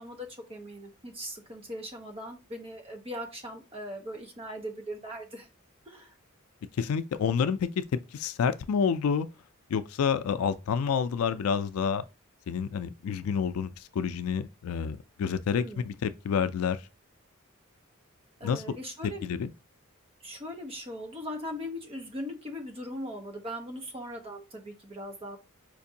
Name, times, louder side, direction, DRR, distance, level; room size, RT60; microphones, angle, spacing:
voice 1, 0.0-5.5 5.8-6.1 15.6-15.9 18.4-19.3 20.2-25.4, equal, 25° right, 0.7 m, -39 dB
voice 2, 6.8-9.3 9.7-12.0 12.5-16.8 18.4-18.8 19.0-19.5, left 6 dB, 85° left, 0.4 m, -29 dB
4.5 x 2.5 x 2.7 m
head